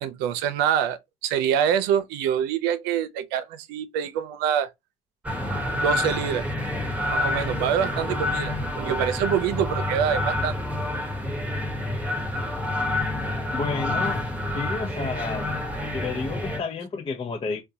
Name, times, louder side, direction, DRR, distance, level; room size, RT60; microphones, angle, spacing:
voice 1, 0.0-4.7 5.7-6.5 7.1-10.5, right 9 dB, 85° right, 0.5 m, -25 dB
sound 1, 5.2-16.6, left 1 dB, 10° right, 1.0 m, -28 dB
voice 2, 13.5-14.3 14.5-15.6 15.9-17.6, left 4 dB, 35° left, 0.6 m, -31 dB
3.6 x 2.2 x 2.7 m
supercardioid pair, 80°, 16 cm